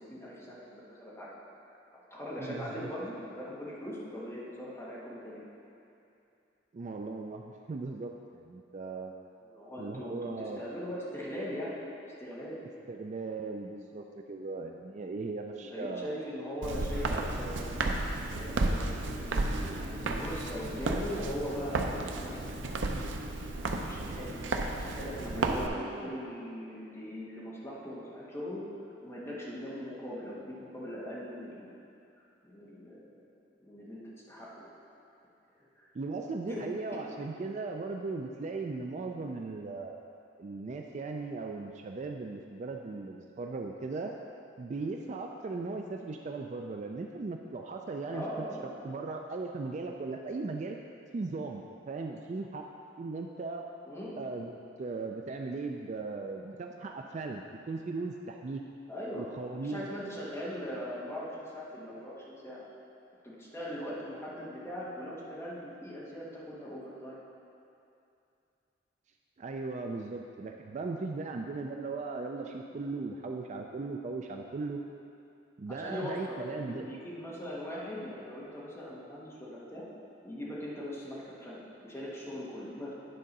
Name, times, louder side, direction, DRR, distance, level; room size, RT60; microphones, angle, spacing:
voice 1, 0.0-1.4 2.1-5.4 9.4-11.7 12.2-12.6 15.6-17.8 18.3-22.8 23.6-24.4 24.8-28.6 29.0-31.8 32.4-33.2 33.6-34.7 35.8-35.9 36.5-36.6 48.1-48.7 53.8-54.2 58.9-59.3 59.6-62.7 63.2-67.2 75.7-79.8 80.2-83.0, equal, 15° left, -7 dB, 1.4 m, -40 dB
voice 2, 2.4-2.9 6.7-9.1 9.8-10.7 12.9-16.2 25.3-26.1 35.9-40.0 40.4-44.1 44.6-48.2 48.6-50.8 51.1-52.6 53.0-53.7 54.2-54.5 54.8-58.6 59.2-59.9 69.4-74.8 75.6-76.8, right 3 dB, 40° right, 2 dB, 0.3 m, -38 dB
Walk footsteps, 16.6-25.7, right 2 dB, 80° right, 0.6 m, -33 dB
9.9 x 3.8 x 5.3 m, 2.6 s
head